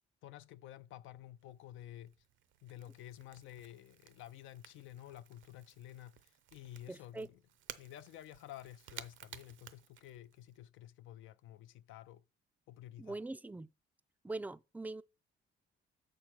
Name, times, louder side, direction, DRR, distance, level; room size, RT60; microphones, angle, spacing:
voice 1, 0.2-2.1 2.6-7.4 7.8-12.2 12.7-13.2, left 13 dB, 80° left, 0.4 m, -52 dB
Crackle / Crack, 1.0-10.6, right 10 dB, 75° right, 0.6 m, -56 dB
voice 2, 6.9-7.3 13.0-13.7 14.2-15.0, right 2 dB, 10° right, 0.3 m, -42 dB
6.4 x 4.7 x 5.9 m
cardioid pair, 90°, 20 cm